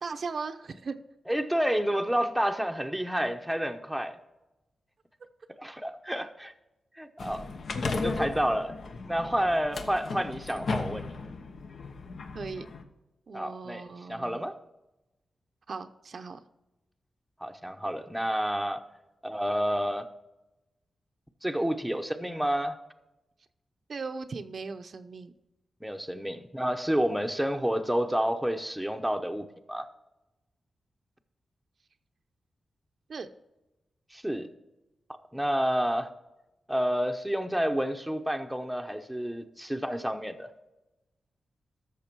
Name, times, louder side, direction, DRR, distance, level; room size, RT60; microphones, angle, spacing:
voice 1, 0.0-1.0 12.3-12.7 13.3-14.5 15.7-16.4 23.9-25.3 33.1-33.3, right 4 dB, 55° right, 8 dB, 0.7 m, -38 dB
voice 2, 1.3-4.2 5.6-6.5 7.0-7.5 7.8-8.8 9.1-11.1 13.3-13.8 14.1-14.5 17.4-18.8 19.2-20.1 21.4-22.8 25.8-29.9 34.1-34.5 35.3-36.1 36.7-40.5, equal, ahead, 5 dB, 0.8 m, -29 dB
sound 1, 7.2-12.8, left 3 dB, 65° left, 1.0 m, -35 dB
13.5 x 6.4 x 4.6 m, 0.98 s
wide cardioid pair, 115°, 0 cm